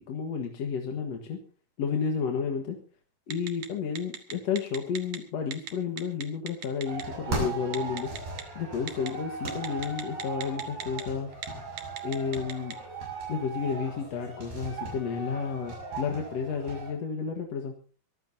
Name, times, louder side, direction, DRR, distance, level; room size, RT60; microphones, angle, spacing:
voice 1, 0.0-1.4 1.8-2.8 3.3-8.2 8.6-11.3 12.0-12.7 13.3-17.7, left 6 dB, 55° left, 3 dB, 2.2 m, -31 dB
Telephone, 3.3-3.7 3.9-5.2 5.5-5.7 6.0-7.0 7.7-8.4 8.9-9.1 9.5-11.0 11.3-11.5 11.8-12.7, right 9 dB, 60° right, 2.9 m, -37 dB
sound 1, 6.9-16.9, right 3 dB, 80° right, 8.4 m, -38 dB
24.0 x 14.5 x 2.8 m, 0.38 s
omnidirectional pair, 4.2 m